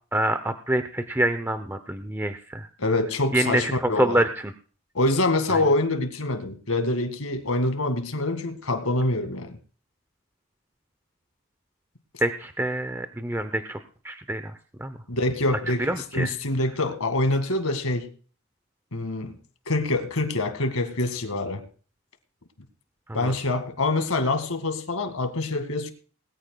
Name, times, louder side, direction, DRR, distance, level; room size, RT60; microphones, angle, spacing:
voice 1, 0.1-2.7 3.3-4.3 5.5-5.6 12.2-13.8 14.0-14.4 14.8-14.9 15.8-16.3 23.2-23.3, right 1 dB, 10° right, 0.6 m, -26 dB
voice 2, 2.8-4.2 4.9-9.5 15.1-18.1 18.9-19.3 19.7-21.6 23.1-25.9, left 2 dB, 80° left, 2.0 m, -25 dB
20.5 x 14.0 x 2.3 m
head